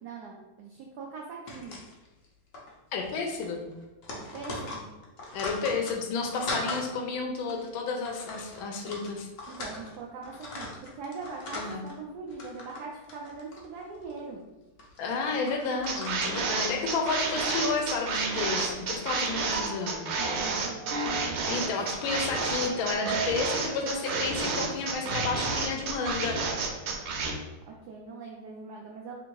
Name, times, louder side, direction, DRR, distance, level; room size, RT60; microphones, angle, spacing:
voice 1, 0.0-1.8 4.1-4.9 9.5-14.4 20.2-21.7 27.7-29.1, right 4 dB, 85° right, -1 dB, 0.9 m, -42 dB
sound 1, 1.5-2.2 2.5-2.7 3.0-3.2 3.4-6.9 7.4-7.6 8.0-10.0 10.2-11.9 12.3-12.8 13.1-14.2 14.8-18.6, left 2 dB, 60° left, 0.8 m, -40 dB
voice 2, 2.9-3.6 5.3-9.3 11.6-11.9 15.0-20.1 21.5-26.4, left 4 dB, 75° left, 2 dB, 1.3 m, -31 dB
sound 2, 15.9-27.3, right 4 dB, 70° right, 1.3 m, -30 dB
3.6 x 2.5 x 4.6 m, 1.1 s
omnidirectional pair, 2.4 m